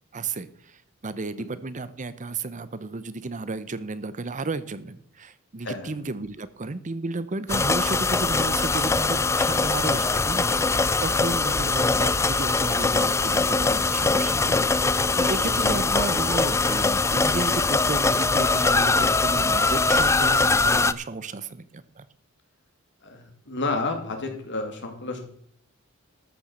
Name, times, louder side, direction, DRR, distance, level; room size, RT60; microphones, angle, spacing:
voice 1, 0.1-10.5 11.0-22.0, right 3 dB, 35° right, 15 dB, 0.7 m, -33 dB
voice 2, 5.6-5.9 11.3-11.4 15.6-15.8 23.0-25.2, left 3 dB, 55° left, 4 dB, 2.7 m, -31 dB
sound 1, 7.5-20.9, left 3 dB, 15° left, 0.3 m, -22 dB
13.5 x 7.0 x 6.4 m, 0.66 s
head